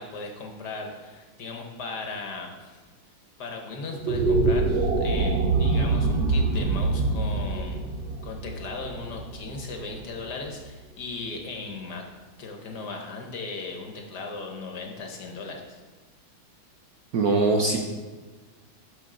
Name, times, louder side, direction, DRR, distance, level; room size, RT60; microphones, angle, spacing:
voice 1, 0.0-2.8 3.4-7.8 8.2-12.0 12.4-15.8, left 3 dB, 55° left, 2 dB, 1.5 m, -37 dB
sound 1, 3.9-10.3, right 3 dB, 80° right, 0.5 m, -25 dB
voice 2, 17.1-17.8, right 3 dB, 65° right, 2 dB, 1.0 m, -21 dB
12.0 x 6.2 x 3.8 m, 1.3 s
omnidirectional pair, 2.3 m